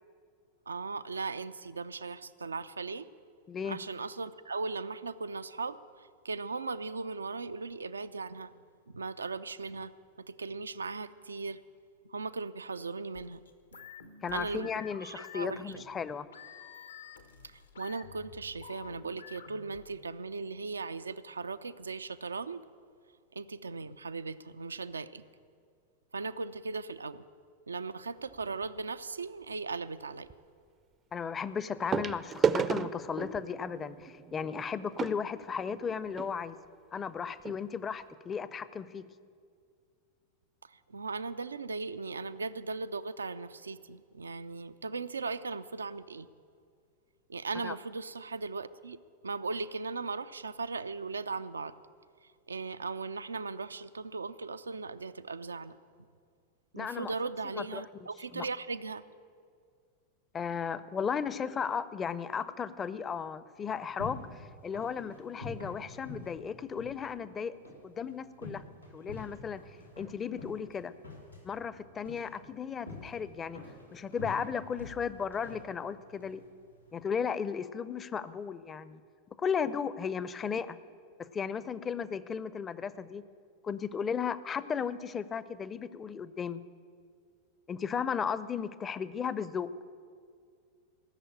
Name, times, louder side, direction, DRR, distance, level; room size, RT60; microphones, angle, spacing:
voice 1, 0.7-3.1 3.6-8.5 8.9-9.9 10.2-11.6 12.1-13.4 13.7-13.8 14.3-14.7 15.0-15.8 17.4-22.6 23.4-25.2 26.1-27.2 27.7-30.3 40.7-46.3 47.3-49.0 49.2-51.8 52.5-55.8 56.7-59.0, right 4 dB, 75° right, 13 dB, 0.4 m, -38 dB
voice 2, 3.5-3.8 14.2-16.3 31.1-36.6 36.9-39.0 47.6-47.7 56.8-57.1 57.6-57.8 58.3-58.5 60.3-67.6 67.8-68.6 68.9-69.6 70.0-70.9 71.4-73.6 73.9-76.4 76.9-79.0 79.4-80.8 81.3-83.2 83.6-86.6 87.7-89.7, left 6 dB, 20° left, 16 dB, 0.6 m, -35 dB
sound 1, 13.1-20.1, left 7 dB, 70° left, 1.0 m, -50 dB
sound 2, 28.3-28.6 30.3-30.4 31.9-36.3 37.1-37.2 37.4-37.6 38.1-38.2, right 7 dB, 25° right, 0.5 m, -33 dB
sound 3, 63.5-77.0, left 2 dB, 90° left, 3.0 m, -48 dB
17.5 x 7.0 x 8.7 m, 2.2 s
figure-of-eight pair, 90°, 0 cm